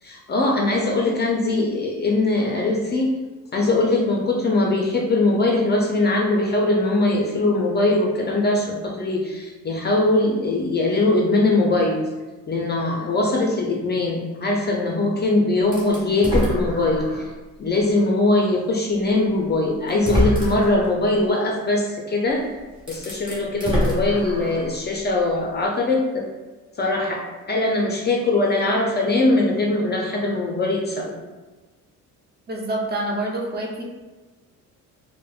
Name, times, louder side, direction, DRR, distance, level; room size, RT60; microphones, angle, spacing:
voice 1, 0.0-3.1 3.5-12.0 12.5-17.3 17.6-22.5 22.9-26.3 26.8-27.2 27.5-31.2, left 2 dB, 30° left, 0 dB, 0.5 m, -21 dB
sound 1, 15.7-17.3 17.9-18.0 19.2-19.3 19.9-20.9 22.3-22.4 22.8-24.8, equal, 15° right, 1.3 m, -25 dB
voice 2, 32.5-33.8, right 1 dB, 30° right, -2 dB, 0.7 m, -27 dB
4.6 x 2.1 x 2.4 m, 1.2 s
cardioid pair, 100°, 33 cm